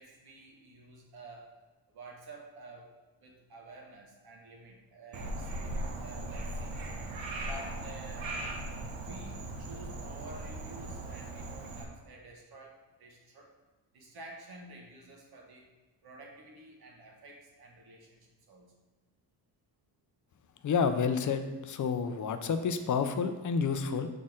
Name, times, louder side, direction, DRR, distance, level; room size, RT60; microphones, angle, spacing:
voice 1, 0.0-1.6 1.9-2.9 3.2-6.9 7.4-8.4 8.9-13.5 13.9-15.7 16.0-18.8, right 2 dB, 55° right, 0 dB, 1.4 m, -50 dB
Frog, 5.1-11.8, right 1 dB, 85° right, 1.1 m, -38 dB
voice 2, 20.6-24.1, left 6 dB, 45° left, 8 dB, 0.5 m, -29 dB
7.5 x 4.3 x 3.6 m, 1.2 s
wide cardioid pair, 155°, 44 cm